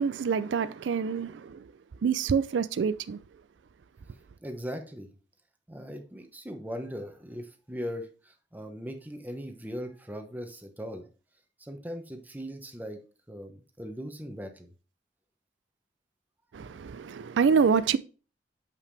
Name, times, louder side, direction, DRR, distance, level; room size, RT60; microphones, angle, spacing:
voice 1, 0.0-1.6 2.0-3.2 16.5-18.0, right 6 dB, 90° right, 0.4 m, -26 dB
voice 2, 4.4-5.1 5.7-11.1 11.6-13.0 13.3-14.7, equal, 10° right, 1.0 m, -39 dB
7.0 x 5.6 x 3.2 m
head